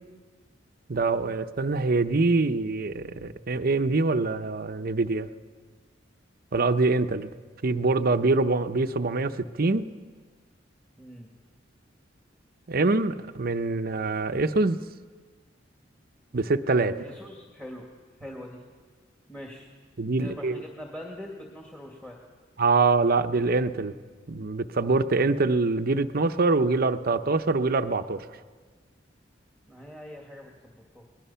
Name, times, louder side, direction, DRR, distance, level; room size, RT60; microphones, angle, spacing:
voice 1, 0.9-5.3 6.5-7.3 7.6-9.9 12.7-14.8 16.3-17.0 20.0-20.6 22.6-23.9 24.3-28.2, right 3 dB, 55° right, 10 dB, 0.8 m, -24 dB
voice 2, 11.0-11.3 16.8-17.8 18.2-18.6 19.3-19.7 20.2-22.2 29.7-31.0, left 1 dB, 5° left, -1 dB, 2.1 m, -42 dB
28.5 x 20.0 x 5.7 m, 1.5 s
head